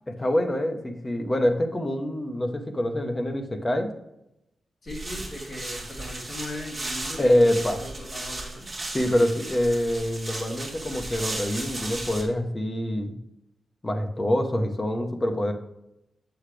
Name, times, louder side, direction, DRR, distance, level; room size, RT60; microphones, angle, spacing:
voice 1, 0.2-3.9 7.2-7.8 8.9-13.1 13.8-15.5, left 1 dB, 20° left, 5 dB, 1.0 m, -25 dB
voice 2, 4.8-8.7, left 1 dB, 45° left, -1 dB, 2.4 m, -39 dB
sound 1, 4.9-12.2, right 2 dB, 20° right, 2.2 m, -36 dB
8.0 x 7.3 x 3.3 m, 0.84 s
wide cardioid pair, 145°, 0 cm